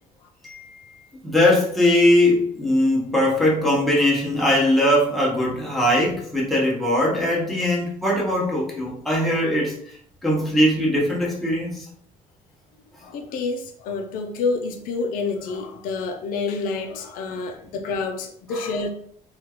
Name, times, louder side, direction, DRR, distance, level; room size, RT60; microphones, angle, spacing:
voice 1, 0.4-9.8 10.2-11.8, left 1 dB, ahead, -4 dB, 0.8 m, -20 dB
voice 2, 13.0-18.9, left 4 dB, 80° left, 4 dB, 0.4 m, -28 dB
2.8 x 2.3 x 2.8 m, 0.62 s
cardioid pair, 130°, 14 cm